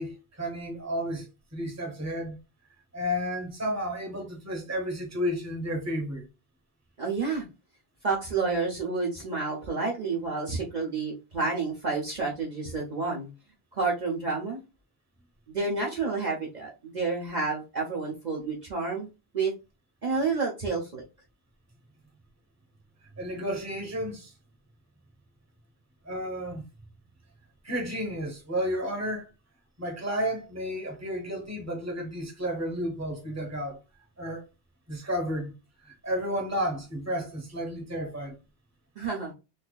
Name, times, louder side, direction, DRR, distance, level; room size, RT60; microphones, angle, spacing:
voice 1, 0.0-2.4 2.9-6.2 23.2-24.3 26.0-26.6 27.6-29.3 29.8-33.8 34.2-34.4 34.9-35.5 35.8-38.4, equal, 15° right, 1.0 m, -32 dB
voice 2, 7.0-7.5 8.0-13.3 13.7-14.6 15.5-19.1 19.3-19.5 20.0-21.0 39.0-39.3, right 4 dB, 45° right, 0.9 m, -29 dB
4.0 x 2.7 x 2.3 m
omnidirectional pair, 1.0 m